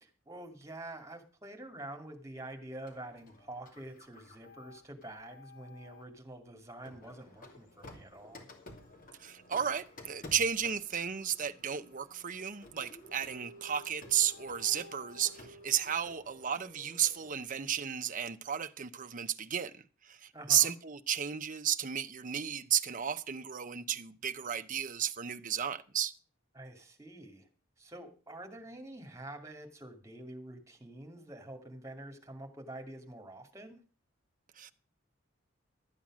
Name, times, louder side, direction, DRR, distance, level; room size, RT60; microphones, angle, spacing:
voice 1, 0.0-8.5 20.3-20.7 26.5-27.5 27.8-33.8, right 1 dB, 15° right, 2.4 m, -47 dB
Printer, 2.9-6.1 6.8-17.4, left 1 dB, 45° left, 2.7 m, -53 dB
voice 2, 9.2-26.1 34.6-34.7, right 9 dB, 40° right, 0.8 m, -33 dB
12.5 x 8.9 x 6.2 m
head